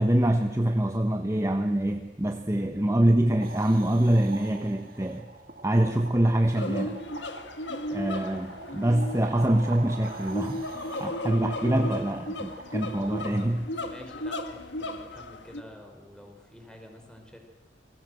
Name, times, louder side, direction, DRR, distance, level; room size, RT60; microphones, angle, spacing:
voice 1, 0.0-5.2 5.6-7.0 7.9-10.6 11.0-13.7, right 1 dB, 15° right, 5 dB, 1.1 m, -25 dB
sound 1, 3.4-13.2, right 3 dB, 55° right, 2.5 m, -44 dB
sound 2, 6.6-15.6, left 1 dB, 75° left, 1.9 m, -35 dB
voice 2, 13.8-17.4, left 1 dB, 5° left, 3 dB, 4.5 m, -48 dB
28.5 x 20.0 x 7.8 m, 1.1 s
head